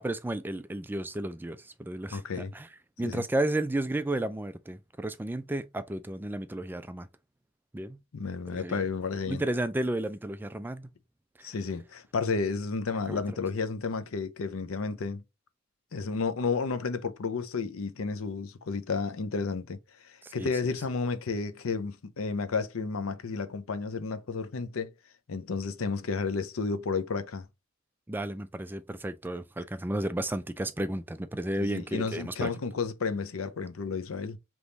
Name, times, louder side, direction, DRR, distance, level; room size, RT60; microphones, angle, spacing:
voice 1, 0.0-2.2 2.5-2.7 3.0-7.1 7.7-8.0 8.6-8.8 9.3-10.9 13.1-13.2 20.2-20.5 28.1-32.5, right 1 dB, 10° right, 0.3 m, -32 dB
voice 2, 2.1-2.5 3.0-3.2 8.1-9.4 11.4-15.2 15.9-19.8 20.0-24.9 25.3-27.5 31.6-34.4, left 4 dB, 85° left, 0.6 m, -32 dB
3.5 x 3.0 x 3.9 m
head